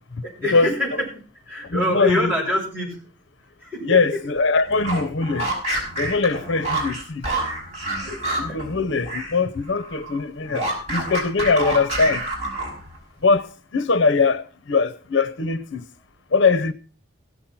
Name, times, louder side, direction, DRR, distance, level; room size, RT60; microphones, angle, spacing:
voice 1, 0.2-3.0 3.6-4.2 8.0-8.6, left 1 dB, 10° right, 6.7 m, -26 dB
voice 2, 1.7-2.3 3.8-5.5 6.0-7.3 8.4-12.2 13.2-15.8 16.3-16.7, left 4 dB, 70° left, 0.7 m, -21 dB
sound 1, 4.7-9.4 9.7-13.0, right 2 dB, 35° right, 5.8 m, -28 dB
16.5 x 7.2 x 5.9 m
head